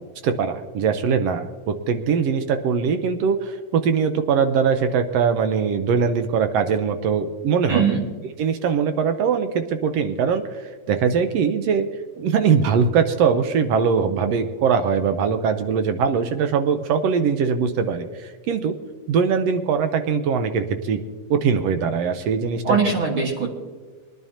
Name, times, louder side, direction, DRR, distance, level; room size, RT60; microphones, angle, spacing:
voice 1, 0.2-7.9 8.4-11.9 12.2-18.7 19.1-21.0 21.3-22.8, right 6 dB, 75° right, 8 dB, 1.6 m, -21 dB
voice 2, 7.7-8.0 22.6-23.5, right 5 dB, 50° right, 0 dB, 2.2 m, -21 dB
23.0 x 10.5 x 2.8 m, 1.4 s
omnidirectional pair, 3.5 m